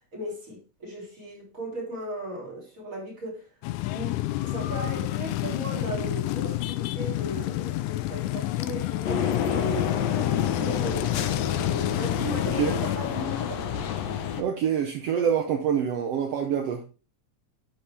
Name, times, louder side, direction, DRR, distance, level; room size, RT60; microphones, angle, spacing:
voice 1, 0.1-3.5 3.9-11.1 12.0-13.8, right 1 dB, 25° right, 3.9 m, -37 dB
sound 1, 3.6-13.0, left 16 dB, 90° left, 2.0 m, -30 dB
sound 2, 9.1-14.4, left 8 dB, 70° left, 2.1 m, -28 dB
voice 2, 14.4-16.8, right 8 dB, 70° right, 1.7 m, -26 dB
11.5 x 5.3 x 3.4 m
omnidirectional pair, 3.4 m